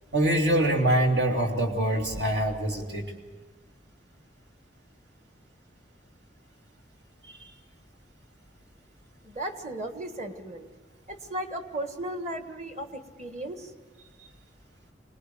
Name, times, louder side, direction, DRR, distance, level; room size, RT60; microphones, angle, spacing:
voice 1, 0.1-3.0, right 1 dB, 80° right, 1 dB, 2.8 m, -24 dB
voice 2, 9.2-10.7 11.1-13.7 14.2-14.3, right 1 dB, 40° right, 7 dB, 1.5 m, -36 dB
24.0 x 19.0 x 7.8 m, 1.4 s
head